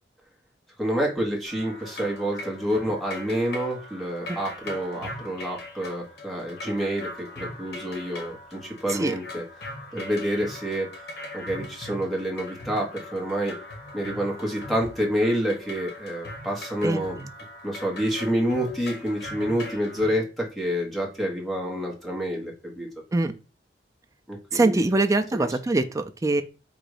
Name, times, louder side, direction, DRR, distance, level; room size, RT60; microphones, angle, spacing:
voice 1, 0.8-9.4 9.9-10.9 11.3-13.5 13.9-17.2 17.6-22.9 24.3-24.8 25.3-25.5, equal, ahead, -2 dB, 1.2 m, -28 dB
sound 1, 1.5-20.1, left 1 dB, 65° left, 1.5 m, -40 dB
voice 2, 16.8-17.3 23.1-23.3 24.5-26.4, right 2 dB, 20° right, 6 dB, 0.4 m, -23 dB
3.9 x 2.6 x 4.7 m, 0.31 s
head